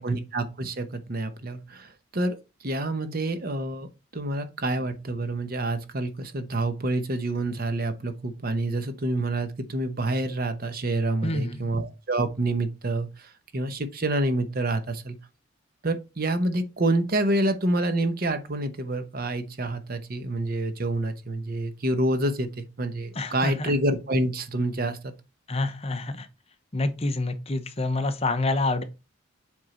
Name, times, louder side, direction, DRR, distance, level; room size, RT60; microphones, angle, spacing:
voice 1, 0.0-15.2 15.8-25.1, right 2 dB, 45° right, 0.9 m, -28 dB
voice 2, 11.2-11.7 23.1-23.7 25.5-26.3 26.7-28.8, left 2 dB, 30° left, 0.7 m, -27 dB
7.8 x 3.7 x 4.2 m
head